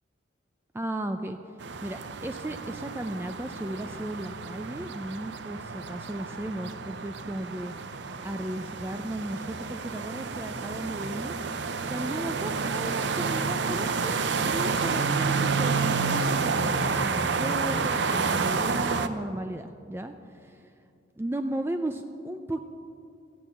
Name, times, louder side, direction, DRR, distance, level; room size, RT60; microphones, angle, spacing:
voice 1, 0.7-7.7 8.2-11.4 11.9-20.7 21.2-22.6, right 1 dB, 10° right, 7 dB, 0.4 m, -35 dB
sound 1, 1.6-19.1, right 4 dB, 65° right, 0.6 m, -29 dB
14.5 x 8.6 x 6.7 m, 2.5 s
head